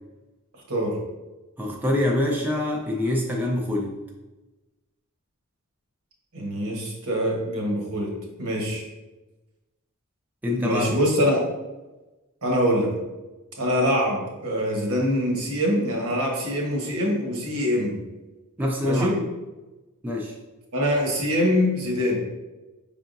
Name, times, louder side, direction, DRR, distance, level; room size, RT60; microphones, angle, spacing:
voice 1, 1.6-4.0 10.4-10.9 18.6-19.1 20.0-20.4, left 1 dB, 10° right, -2 dB, 0.4 m, -25 dB
voice 2, 6.3-8.1 8.4-8.8 10.5-11.4 12.4-12.9 13.6-17.9 18.8-19.1 20.7-22.2, equal, 80° right, -1 dB, 1.2 m, -24 dB
5.4 x 3.6 x 2.6 m, 1.1 s
head